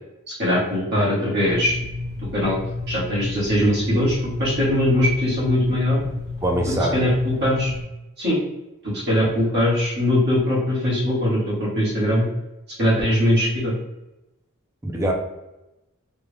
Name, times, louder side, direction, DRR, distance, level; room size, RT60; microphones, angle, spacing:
voice 1, 0.3-1.7 2.3-2.6 2.9-6.0 6.9-7.7 8.2-8.4 8.8-12.2 12.8-13.7, left 1 dB, 55° right, -8 dB, 1.5 m, -21 dB
sound 1, 1.4-7.8, left 2 dB, 50° left, 1.0 m, -32 dB
voice 2, 6.4-6.9 14.8-15.1, right 1 dB, 15° right, 0 dB, 0.5 m, -22 dB
3.4 x 2.4 x 3.3 m, 0.95 s
head